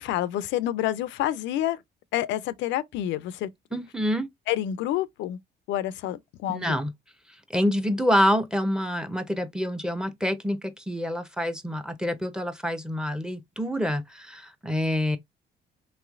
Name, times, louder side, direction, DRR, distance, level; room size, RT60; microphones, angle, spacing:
voice 1, 0.0-1.8 2.1-3.5 4.5-5.4 5.7-6.8, left 13 dB, 80° left, 0.4 m, -28 dB
voice 2, 3.7-4.3 6.5-6.9 7.5-15.2, equal, 5° right, 0.6 m, -27 dB
3.1 x 3.1 x 2.4 m
cardioid pair, 80°, 19 cm